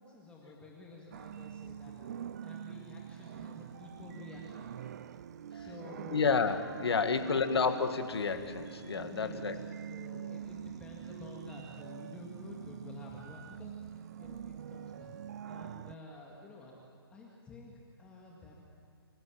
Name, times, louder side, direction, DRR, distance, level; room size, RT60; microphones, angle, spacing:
voice 1, 0.0-4.7 5.5-6.3 6.9-7.6 8.9-9.6 9.9-15.2 15.5-16.8 17.1-18.6, left 2 dB, 10° left, -3 dB, 2.0 m, -51 dB
sound 1, 1.1-15.9, right 9 dB, 40° right, 0.6 m, -45 dB
voice 2, 6.1-9.6 10.1-10.2, left 5 dB, 75° left, 8 dB, 2.1 m, -30 dB
26.0 x 16.5 x 8.8 m, 2.4 s
hypercardioid pair, 160°, 13 cm